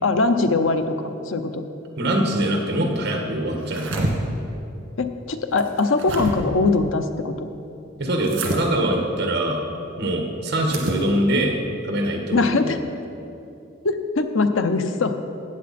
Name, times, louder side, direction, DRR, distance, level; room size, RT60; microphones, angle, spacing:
voice 1, 0.0-1.6 5.0-7.5 12.3-12.8 13.8-15.2, left 3 dB, 85° left, 8 dB, 0.7 m, -21 dB
voice 2, 2.0-4.2 8.0-9.6 10.0-11.6 11.8-12.7, right 1 dB, 60° right, 2 dB, 1.6 m, -23 dB
sound 1, 3.6-4.1 5.6-6.3 8.2-8.6 10.6-11.0, right 2 dB, 80° right, 1.9 m, -27 dB
14.5 x 8.6 x 4.3 m, 2.7 s
head